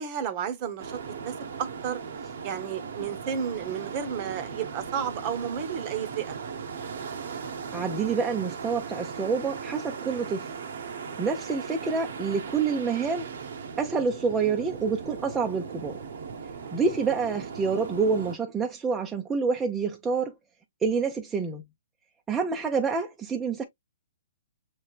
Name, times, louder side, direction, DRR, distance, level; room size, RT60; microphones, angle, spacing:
voice 1, 0.0-2.0 2.4-6.3 11.1-11.3, right 8 dB, 35° right, 0.9 m, -32 dB
sound 1, 0.8-18.4, right 6 dB, 70° right, 0.9 m, -38 dB
voice 2, 7.7-10.5 11.2-13.3 13.8-16.0 16.7-20.3 20.8-21.6 22.3-23.6, right 5 dB, 10° right, 0.6 m, -27 dB
6.2 x 3.2 x 2.3 m
hypercardioid pair, 145°, 0 cm